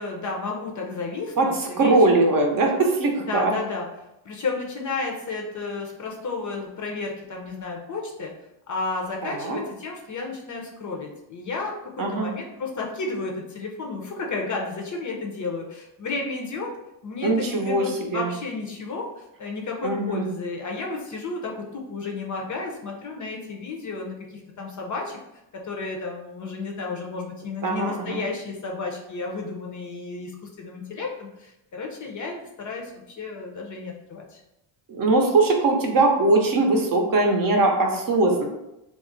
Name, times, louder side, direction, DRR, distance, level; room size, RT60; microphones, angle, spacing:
voice 1, 0.0-2.0 3.2-3.9 4.2-8.3 8.7-16.8 17.0-25.2 25.5-34.4, left 3 dB, 40° left, 0 dB, 0.5 m, -32 dB
voice 2, 1.4-3.5 9.2-9.6 12.0-12.3 17.2-18.3 19.8-20.3 27.6-28.2 34.9-38.4, right 2 dB, 45° right, 2 dB, 0.7 m, -21 dB
2.4 x 2.0 x 3.8 m, 0.89 s
cardioid pair, 90°, 49 cm